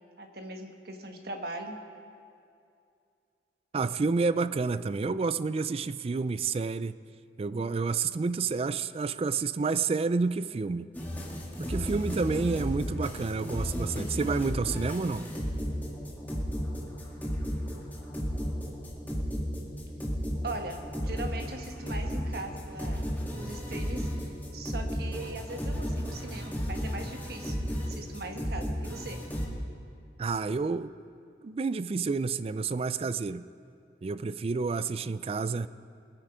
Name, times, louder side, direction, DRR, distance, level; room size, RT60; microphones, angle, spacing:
voice 1, 0.2-1.8 20.4-23.1 23.4-24.3 24.5-29.2, right 2 dB, 60° right, 4 dB, 1.4 m, -40 dB
voice 2, 3.7-7.0 7.4-10.9 11.6-15.3 30.2-30.9 31.4-33.4 34.0-35.7, right 4 dB, 35° right, 15 dB, 0.3 m, -29 dB
sound 1, 10.9-29.5, equal, 10° left, 2.0 m, -34 dB
21.5 x 9.1 x 5.0 m, 2.5 s
head